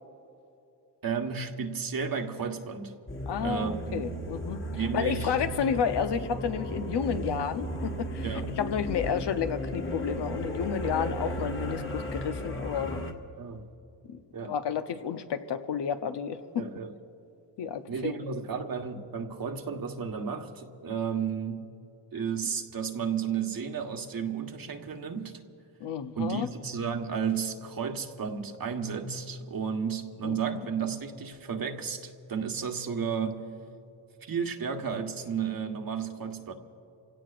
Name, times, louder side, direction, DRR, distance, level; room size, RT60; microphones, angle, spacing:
voice 1, 1.0-2.9 3.4-4.2 4.7-5.3 8.2-8.5 13.4-13.6 14.3-14.5 16.6-16.9 17.9-21.7 22.1-25.4 26.2-33.5 34.2-36.5, right 6 dB, 50° right, 4 dB, 1.5 m, -33 dB
sound 1, 3.1-13.1, equal, 30° left, 1.7 m, -35 dB
voice 2, 3.3-4.6 4.9-13.0 14.1-14.2 14.4-16.7 17.6-18.2 25.8-26.5 30.2-30.6, left 7 dB, 70° left, 8 dB, 1.0 m, -31 dB
28.0 x 17.0 x 2.5 m, 2.7 s
cardioid pair, 70°, 43 cm